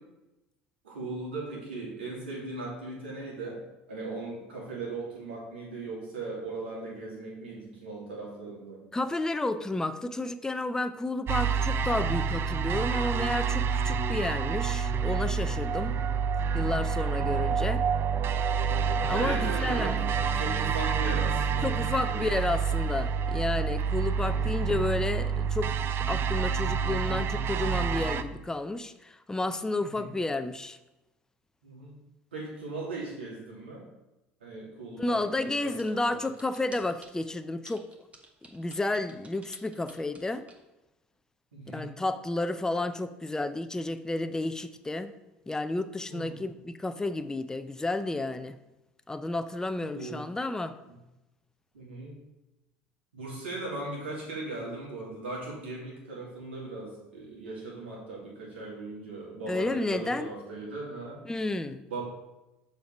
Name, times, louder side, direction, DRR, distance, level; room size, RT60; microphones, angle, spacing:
voice 1, 0.8-3.6 3.9-8.8 15.7-16.1 19.1-22.2 24.2-24.5 29.8-30.1 31.6-32.0 32.3-33.9 34.4-36.2 41.5-41.9 46.1-46.3 49.9-50.2 51.7-52.2 53.1-61.2 61.9-62.0, right 2 dB, 85° right, -4 dB, 2.6 m, -38 dB
voice 2, 8.9-16.0 16.5-17.8 19.0-20.0 21.6-25.7 26.1-30.8 35.0-37.9 38.5-40.4 41.7-45.1 45.5-48.6 49.1-50.7 59.5-60.3 61.3-61.8, left 2 dB, 10° left, 10 dB, 0.5 m, -31 dB
sound 1, 11.3-28.2, right 6 dB, 40° right, 0.5 m, -28 dB
sound 2, 35.6-37.2 37.7-40.6, right 2 dB, 20° right, 1.3 m, -52 dB
7.0 x 4.6 x 5.0 m, 0.98 s
hypercardioid pair, 70°, 6 cm